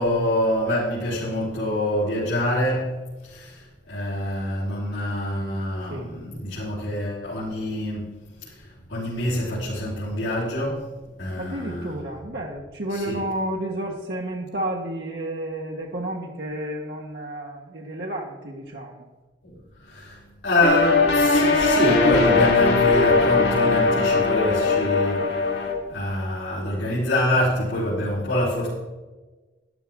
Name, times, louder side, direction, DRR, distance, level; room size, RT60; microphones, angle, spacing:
voice 1, 0.0-10.9 11.2-12.0 12.9-13.2 19.4-28.8, left 1 dB, 85° left, -9 dB, 3.8 m, -26 dB
voice 2, 11.4-19.0, right 1 dB, 60° right, -2 dB, 1.3 m, -31 dB
sound 1, 20.6-25.7, left 3 dB, 60° left, 2.2 m, -19 dB
12.5 x 12.0 x 3.6 m, 1.2 s
head